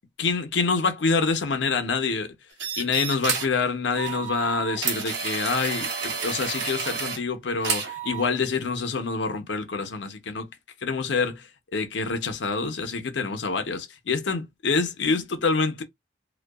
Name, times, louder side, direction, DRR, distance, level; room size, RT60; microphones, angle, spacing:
voice 1, 0.2-2.3 2.8-10.5 10.8-11.4 11.7-15.8, left 4 dB, 75° left, 0.6 m, -26 dB
sound 1, 2.6-3.6 3.9-7.2 7.6-8.2, right 6 dB, 70° right, 0.7 m, -30 dB
2.6 x 2.2 x 2.2 m
head